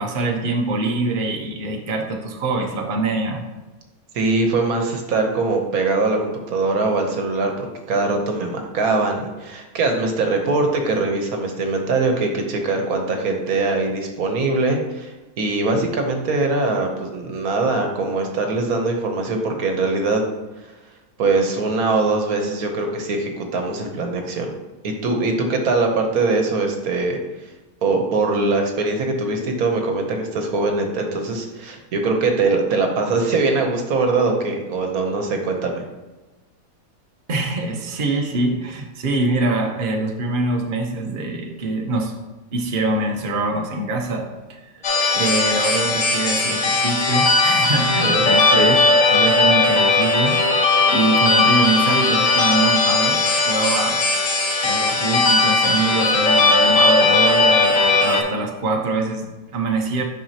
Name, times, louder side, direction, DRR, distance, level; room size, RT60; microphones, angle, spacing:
voice 1, 0.0-3.4 37.3-42.1 42.5-44.6 45.1-48.8 49.1-50.4 50.9-53.2 53.5-54.0 54.6-60.0, right 3 dB, 40° right, 1 dB, 0.9 m, -24 dB
voice 2, 4.1-20.2 21.2-24.5 24.8-27.2 27.8-35.8 48.0-48.3 48.6-48.7, right 3 dB, 75° right, 3 dB, 1.4 m, -22 dB
sound 1, 44.8-58.2, left 3 dB, 60° left, 1.6 m, -17 dB
8.9 x 5.7 x 2.8 m, 1.1 s
omnidirectional pair, 1.5 m